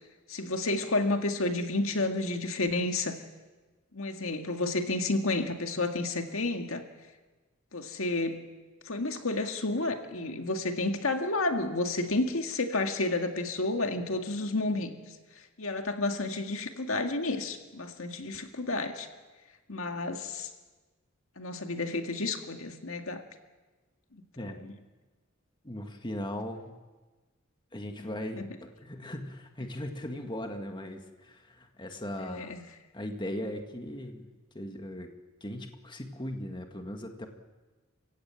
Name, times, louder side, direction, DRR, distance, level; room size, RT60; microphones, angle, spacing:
voice 1, 0.3-3.2 3.9-6.8 7.7-8.5 8.8-15.0 15.6-19.1 19.7-20.5 21.4-23.2 24.1-24.5 28.4-28.5 32.2-32.6, left 2 dB, 75° left, 5 dB, 2.0 m, -31 dB
voice 2, 25.6-26.7 27.7-32.6 32.9-34.3 34.5-35.1 35.4-37.3, left 1 dB, 20° left, 4 dB, 1.9 m, -38 dB
28.5 x 16.5 x 8.9 m, 1.3 s
head